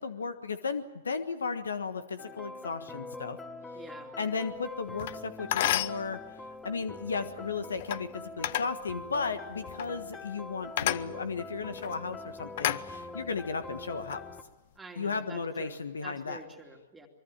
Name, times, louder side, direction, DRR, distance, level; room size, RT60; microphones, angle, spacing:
voice 1, 0.0-3.4 4.2-6.2 6.6-14.2 15.0-16.4, left 5 dB, 75° left, 10 dB, 1.5 m, -35 dB
sound 1, 2.2-14.4, left 3 dB, 10° left, 1.5 m, -44 dB
voice 2, 3.7-4.1 14.8-17.1, right 3 dB, 10° right, 2 dB, 2.6 m, -48 dB
sound 2, 5.0-5.2 5.5-6.0 7.8-8.0 8.4-8.7 9.7-9.9 10.8-11.1 11.7-11.9 12.6-13.4 13.9-14.2, left 12 dB, 55° left, 0.9 m, -30 dB
24.0 x 23.5 x 7.4 m, 1.1 s
figure-of-eight pair, 115°, 0 cm